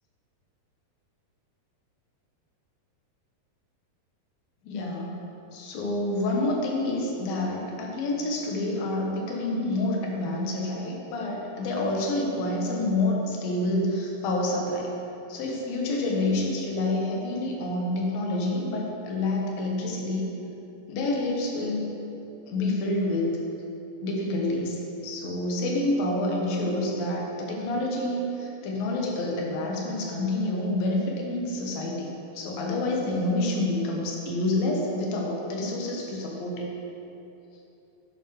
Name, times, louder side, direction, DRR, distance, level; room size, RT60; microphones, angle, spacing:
voice 1, 4.6-5.2 5.5-14.9 15.3-20.3 20.9-21.9 22.5-23.4 24.0-36.7, left 2 dB, 70° left, -1 dB, 3.0 m, -28 dB
12.0 x 9.8 x 3.3 m, 2.9 s
omnidirectional pair, 4.6 m